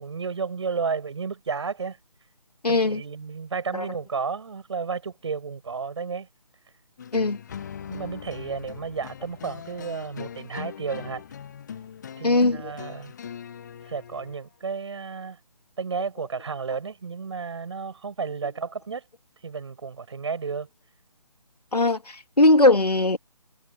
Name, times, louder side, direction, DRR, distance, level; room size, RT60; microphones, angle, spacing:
voice 1, 0.0-2.0 2.7-6.3 7.9-11.2 12.2-13.1 13.9-15.4 15.8-19.0 19.4-20.7, right 5 dB, 45° right, 6.4 m, -32 dB
voice 2, 2.6-3.0 3.7-3.8 7.1-7.4 12.2-12.7 21.7-23.2, left 2 dB, 75° left, 3.0 m, -20 dB
sound 1, 7.0-14.4, left 8 dB, 25° left, 1.3 m, -40 dB
figure-of-eight pair, 150°, 20 cm